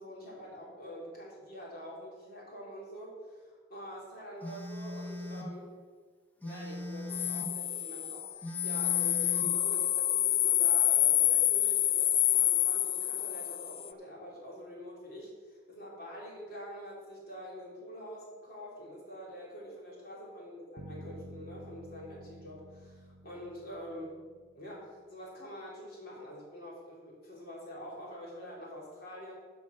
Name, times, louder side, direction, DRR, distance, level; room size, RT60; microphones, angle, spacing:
voice 1, 0.0-5.7 6.4-24.2 24.5-29.3, equal, 55° left, -4 dB, 3.4 m, -46 dB
Telephone, 4.4-5.6 6.4-7.6 8.4-9.6, left 1 dB, 10° left, 1.0 m, -40 dB
sound 1, 7.1-13.9, left 12 dB, 30° left, 0.3 m, -27 dB
Bass guitar, 20.8-24.8, equal, 60° right, 0.9 m, -50 dB
13.5 x 5.4 x 5.8 m, 1.5 s
head